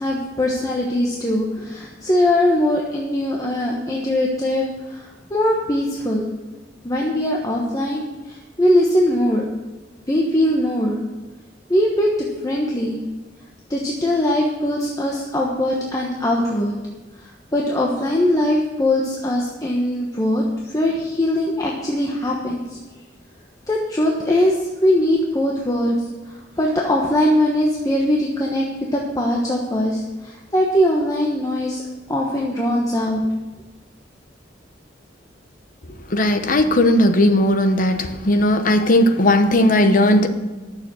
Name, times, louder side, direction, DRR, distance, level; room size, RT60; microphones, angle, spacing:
voice 1, 0.0-6.2 6.8-8.0 8.3-9.4 10.1-11.0 11.7-12.1 12.4-13.0 13.7-16.8 17.5-20.4 20.7-22.8 23.7-25.9 26.6-28.6 28.9-31.8 32.1-33.2, left 1 dB, 20° left, -2 dB, 1.2 m, -21 dB
voice 2, 36.1-40.3, left 1 dB, 50° left, 7 dB, 1.0 m, -16 dB
12.0 x 7.0 x 6.4 m, 1.2 s
head